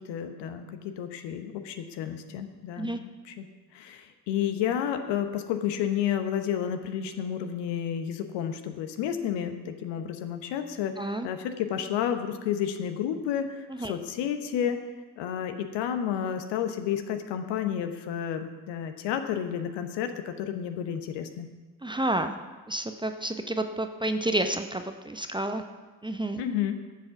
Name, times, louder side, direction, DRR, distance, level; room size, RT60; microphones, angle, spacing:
voice 1, 0.0-3.5 3.7-14.8 15.2-21.5 26.4-26.8, left 9 dB, 60° left, 8 dB, 1.1 m, -31 dB
voice 2, 21.8-22.3 22.7-25.6 26.0-26.4, right 1 dB, 10° right, 7 dB, 0.8 m, -30 dB
13.5 x 7.7 x 5.8 m, 1.3 s
figure-of-eight pair, 45°, 48 cm